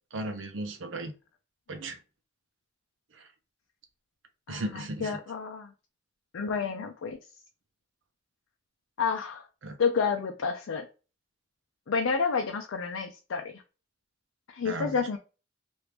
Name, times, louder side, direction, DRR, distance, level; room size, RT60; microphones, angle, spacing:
voice 1, 0.1-1.1 1.7-2.0 4.5-5.2 9.6-9.8 14.6-15.0, right 2 dB, 70° right, 0.6 m, -35 dB
voice 2, 4.5-5.7 6.3-7.2 9.0-9.5 9.8-10.9 11.9-13.6 14.5-15.2, left 5 dB, 90° left, 0.5 m, -30 dB
2.9 x 2.6 x 3.3 m
head